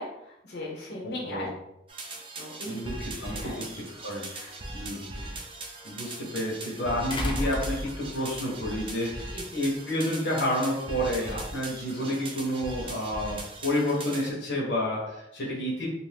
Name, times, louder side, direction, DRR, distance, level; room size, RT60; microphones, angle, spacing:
voice 1, 0.0-1.5 2.4-2.8 3.3-3.7 4.3-4.5 4.9-5.0 9.3-9.6 11.9-12.2, left 1 dB, 65° left, -3 dB, 0.7 m, -39 dB
sound 1, 1.9-14.3, right 2 dB, 30° right, 0.4 m, -39 dB
voice 2, 3.2-3.7 4.0-4.3 4.7-5.1 5.8-15.9, left 1 dB, 85° left, -4 dB, 1.0 m, -30 dB
sound 2, 3.8-3.9 7.1-8.4 9.7-9.8, left 1 dB, 25° left, 0.4 m, -31 dB
2.6 x 2.5 x 3.4 m, 0.83 s
head